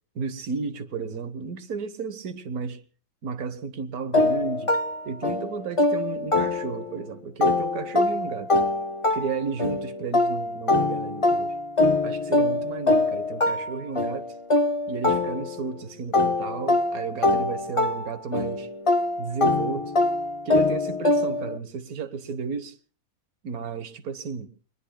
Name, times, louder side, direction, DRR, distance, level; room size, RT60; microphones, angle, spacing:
voice 1, 0.1-2.8 3.2-4.8 5.0-8.5 9.1-11.5 12.0-14.4 14.9-18.7 19.2-19.9 20.4-22.8 23.4-24.5, right 5 dB, 85° right, 1.6 m, -33 dB
sound 1, 4.1-7.0 7.4-15.8 16.1-21.6, left 2 dB, 25° left, 0.8 m, -24 dB
29.5 x 21.5 x 2.2 m
omnidirectional pair, 1.5 m